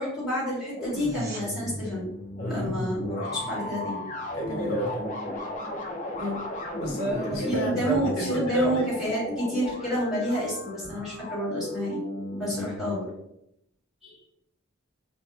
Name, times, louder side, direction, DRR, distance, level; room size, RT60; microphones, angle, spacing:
voice 1, 0.0-2.1 2.5-4.0 6.2-6.4 7.5-12.0 12.4-13.1 14.0-14.1, equal, ahead, -10 dB, 1.5 m, -29 dB
sound 1, 0.7-12.8, left 1 dB, 40° left, 0.4 m, -35 dB
sound 2, 0.8-1.5 12.8-12.9, right 3 dB, 50° right, 0.7 m, -43 dB
voice 2, 2.4-2.8 4.4-5.1 6.8-8.9 12.6-12.9, equal, 80° left, 0 dB, 0.6 m, -30 dB
2.8 x 2.4 x 2.2 m, 0.78 s
head